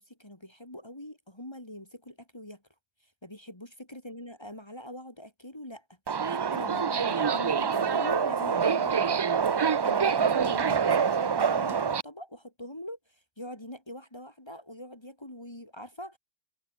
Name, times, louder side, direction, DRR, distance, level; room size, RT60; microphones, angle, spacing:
voice 1, 0.0-2.6 3.2-5.8 6.3-9.2 9.5-16.2, left 1 dB, 25° left, 3.3 m, -43 dB
Subway metro underground, 6.1-12.0, right 6 dB, 45° right, 0.3 m, -26 dB
omnidirectional pair, 1.0 m